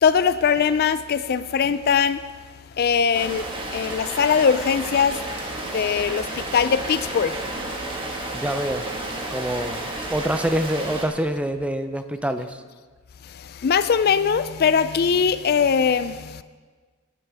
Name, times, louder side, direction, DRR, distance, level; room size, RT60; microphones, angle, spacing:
voice 1, 0.0-2.2 2.8-3.5 3.7-5.2 5.7-7.3 13.6-16.4, left 6 dB, 50° left, 14 dB, 0.4 m, -21 dB
Rain, 3.1-11.1, right 2 dB, 25° right, 1.6 m, -32 dB
voice 2, 8.3-8.9 9.3-12.6, right 1 dB, 5° right, 9 dB, 0.5 m, -26 dB
19.5 x 11.0 x 3.5 m, 1.5 s
head